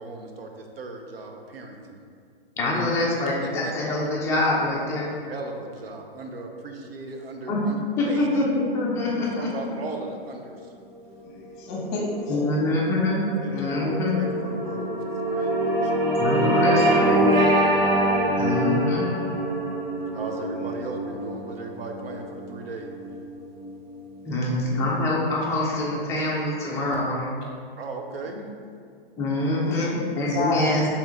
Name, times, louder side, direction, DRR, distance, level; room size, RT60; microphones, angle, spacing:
voice 1, 0.0-2.0 3.4-3.7 5.0-7.8 8.0-8.5 9.2-10.7 13.3-16.1 20.1-22.9 27.8-28.4, right 3 dB, 80° right, 3 dB, 0.7 m, -37 dB
voice 2, 2.6-5.1 7.5-7.6 8.0-8.5 8.7-9.5 12.3-13.2 13.5-14.2 16.2-17.2 18.4-19.0 24.3-27.3 28.3-28.4 29.2-30.9, left 2 dB, 10° left, -5 dB, 0.4 m, -25 dB
voice 3, 11.2-12.4 20.6-20.7 29.5-29.9 30.3-30.8, left 3 dB, 30° left, -2 dB, 0.9 m, -29 dB
sound 1, 11.2-23.8, right 1 dB, 55° right, 1.4 m, -25 dB
4.5 x 3.4 x 3.1 m, 2.2 s
hypercardioid pair, 140°, 30 cm